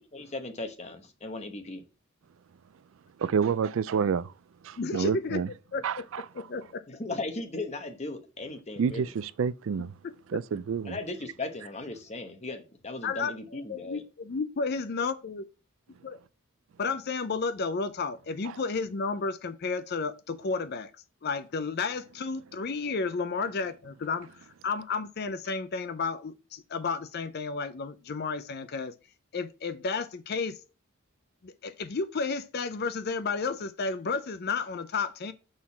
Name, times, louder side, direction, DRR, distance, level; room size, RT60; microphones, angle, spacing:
voice 1, 0.0-1.8 6.9-9.1 10.8-14.0, left 2 dB, 30° left, 1.0 m, -37 dB
voice 2, 3.2-4.3 4.6-5.5 5.8-6.2 8.8-9.9 10.3-11.0, right 6 dB, 60° right, 0.3 m, -28 dB
voice 3, 4.8-5.4 5.7-6.1 6.3-6.8 10.0-10.4 13.0-15.4 16.0-16.2 16.8-20.9 21.2-28.9 29.3-30.6 31.4-35.3, left 4 dB, 45° left, 0.4 m, -32 dB
6.4 x 3.8 x 5.6 m
head